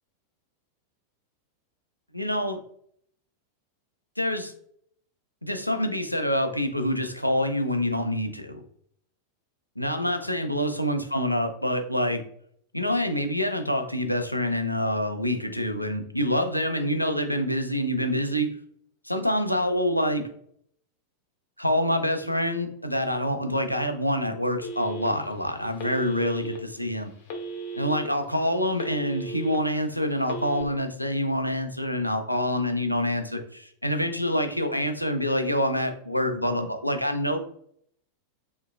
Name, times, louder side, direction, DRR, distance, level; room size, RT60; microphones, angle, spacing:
voice 1, 2.1-2.6 4.2-4.5 5.4-8.6 9.8-12.2 12.7-18.5 19.0-20.3 21.6-27.1 27.8-37.4, equal, 90° left, 6 dB, 0.4 m, -26 dB
Telephone, 24.6-25.3 25.8-26.6 27.3-28.1 28.5-29.6 30.2-30.6, right 3 dB, 45° left, 0.8 m, -35 dB
3.6 x 2.6 x 2.3 m, 0.65 s
figure-of-eight pair, 90°, 0 cm